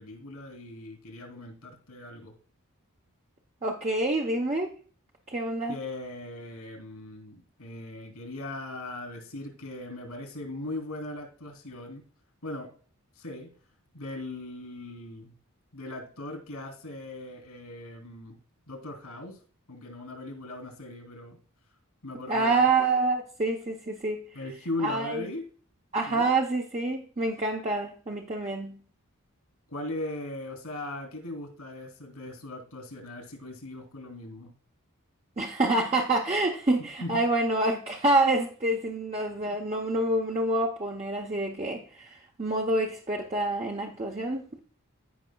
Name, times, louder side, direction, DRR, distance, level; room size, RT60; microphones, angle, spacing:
voice 1, 0.0-2.3 5.7-12.0 12.4-12.7 13.2-13.5 13.9-15.3 15.7-18.4 18.7-19.4 19.7-21.4 22.0-22.7 24.3-25.5 26.1-26.3 29.7-34.5 37.0-37.2, left 2 dB, 90° left, 3.1 m, -39 dB
voice 2, 3.6-4.7 5.3-5.7 22.3-24.2 24.8-25.3 25.9-28.8 35.4-44.6, right 2 dB, 30° right, 0.7 m, -27 dB
15.0 x 5.4 x 2.3 m
head